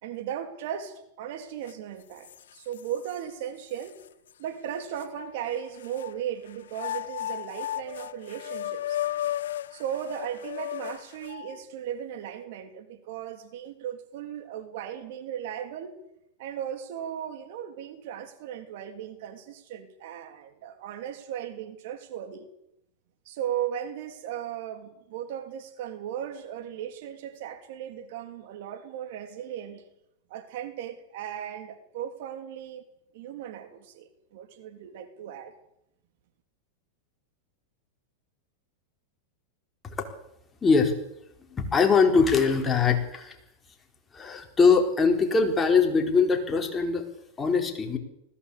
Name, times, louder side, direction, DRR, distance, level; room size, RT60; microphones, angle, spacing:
voice 1, 0.0-4.0 4.4-9.0 9.7-15.9 16.4-22.5 23.2-29.8 30.3-32.8 33.1-35.5, right 10 dB, 65° right, 8 dB, 3.2 m, -36 dB
sound 1, 1.7-1.8 2.2-3.2 3.8-3.9 5.0-6.1 6.7-11.6, left 12 dB, 80° left, 0.7 m, -34 dB
voice 2, 40.6-40.9 41.5-43.4 44.1-47.1 47.4-48.0, left 5 dB, 20° left, 4 dB, 4.0 m, -22 dB
20.0 x 16.0 x 8.5 m, 0.80 s
hypercardioid pair, 115°, 0 cm